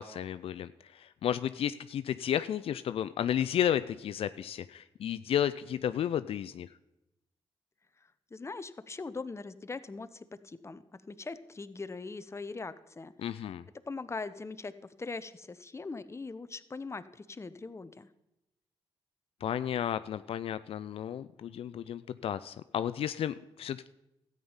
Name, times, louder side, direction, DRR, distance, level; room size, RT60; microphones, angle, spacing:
voice 1, 0.0-6.7 13.2-13.6 19.4-23.9, left 10 dB, 70° left, 13 dB, 0.4 m, -33 dB
voice 2, 8.3-13.5 13.9-14.7 15.0-18.1, left 3 dB, 25° left, 13 dB, 0.8 m, -41 dB
13.0 x 8.9 x 5.6 m, 0.90 s
cardioid pair, 60°, 10 cm